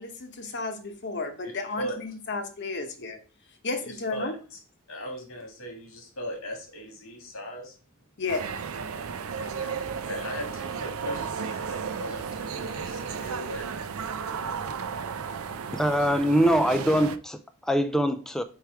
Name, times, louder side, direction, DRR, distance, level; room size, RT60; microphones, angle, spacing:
voice 1, 0.0-3.2 3.6-4.3 8.2-8.4, left 3 dB, 55° left, 1.0 m, -33 dB
voice 2, 1.4-2.0 3.8-4.6 4.9-7.7 9.4-13.7, equal, 80° left, 2.3 m, -38 dB
sound 1, 8.3-17.2, right 6 dB, 80° right, 0.5 m, -34 dB
voice 3, 15.7-18.4, equal, 5° left, 0.3 m, -23 dB
4.8 x 4.7 x 4.6 m
head